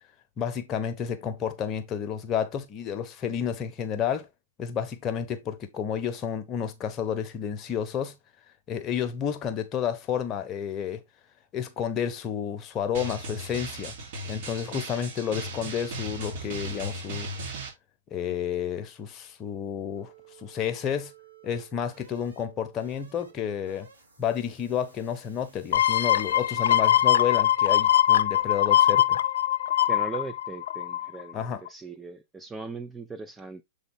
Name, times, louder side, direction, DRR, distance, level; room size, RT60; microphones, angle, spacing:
voice 1, 0.4-4.3 4.6-8.2 8.7-11.0 11.5-13.9 14.3-17.3 18.1-20.1 20.4-21.1 21.4-23.9 24.2-29.2 31.3-31.6, left 8 dB, 30° left, 1.1 m, -31 dB
Drum, 12.9-17.7, right 1 dB, 55° right, 3.2 m, -36 dB
sound 1, 19.5-26.5, right 6 dB, 85° right, 2.5 m, -55 dB
sound 2, 25.7-31.2 31.7-31.8, left 12 dB, 65° left, 0.5 m, -22 dB
voice 2, 29.9-33.6, right 3 dB, 10° right, 0.6 m, -39 dB
7.2 x 3.9 x 3.7 m
hypercardioid pair, 115°, 0 cm